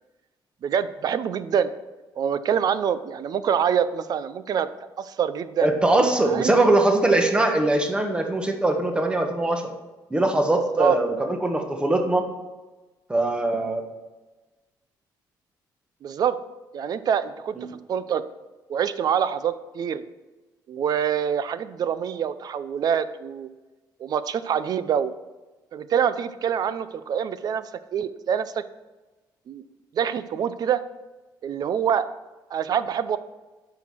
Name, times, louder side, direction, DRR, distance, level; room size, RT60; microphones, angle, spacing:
voice 1, 0.6-1.7 2.2-4.7 5.0-5.7 6.2-6.5 10.8-11.0 16.0-16.4 16.7-17.5 17.9-18.2 18.7-20.0 20.7-23.5 24.0-25.1 25.7-28.5 29.5-29.6 29.9-30.8 31.4-32.1 32.5-33.2, right 8 dB, 55° right, 14 dB, 0.6 m, -25 dB
voice 2, 5.6-9.7 10.1-12.3 13.1-13.8 17.6-17.7, right 2 dB, 10° right, 4 dB, 1.3 m, -21 dB
10.0 x 5.9 x 6.2 m, 1.2 s
cardioid pair, 110°, 8 cm